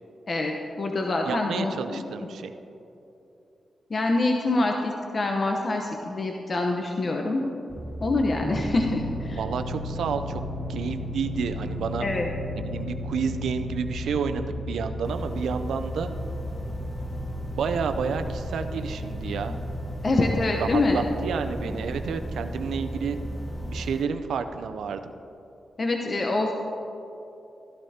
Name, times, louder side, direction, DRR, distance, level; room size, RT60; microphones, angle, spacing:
voice 1, 0.3-2.0 3.9-7.4 8.0-9.4 12.0-12.3 19.5-19.6 20.0-21.0 25.8-26.5, left 2 dB, 50° left, 2 dB, 0.9 m, -25 dB
voice 2, 1.3-2.5 9.4-10.4 10.7-12.1 12.5-16.1 17.5-19.6 20.6-23.2 23.7-25.1, right 6 dB, 80° right, 8 dB, 0.5 m, -30 dB
sound 1, 7.7-23.9, equal, 30° right, 1.7 m, -34 dB
sound 2, 15.0-24.1, left 1 dB, 30° left, 1.2 m, -42 dB
14.0 x 11.5 x 2.8 m, 2.9 s
cardioid pair, 55°, 0 cm